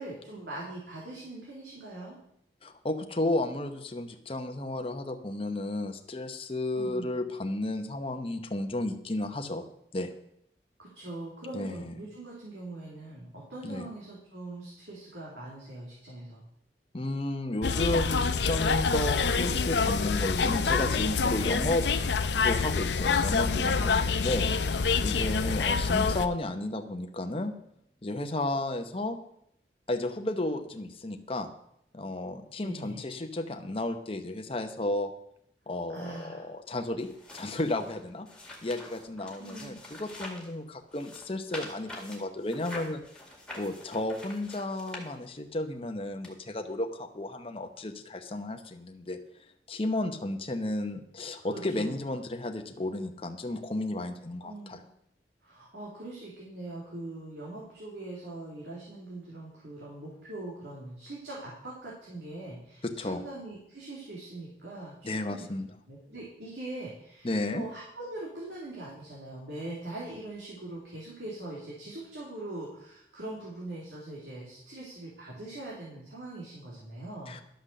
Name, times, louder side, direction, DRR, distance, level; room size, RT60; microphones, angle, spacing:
voice 1, 0.0-2.2 6.7-7.1 10.8-16.4 23.4-23.9 25.4-25.7 32.6-33.0 35.9-36.5 39.4-39.8 51.4-52.0 54.4-54.8 55.4-65.5 65.9-77.4, right 2 dB, 75° right, -5 dB, 2.8 m, -42 dB
voice 2, 2.6-9.6 9.9-10.1 11.5-11.9 13.6-13.9 16.9-21.8 22.3-27.5 28.0-29.2 29.9-31.5 31.9-35.1 35.7-37.1 37.3-38.3 38.6-43.0 43.6-49.2 49.7-54.8 62.8-63.2 65.0-65.7 67.2-67.6 77.3-77.4, left 1 dB, 30° left, 5 dB, 0.9 m, -33 dB
sound 1, 17.6-26.3, left 5 dB, 80° left, 0.6 m, -26 dB
sound 2, 37.0-40.5 40.9-45.5 46.2-46.3, left 1 dB, 5° left, 2.0 m, -45 dB
11.5 x 6.2 x 6.6 m, 0.74 s
head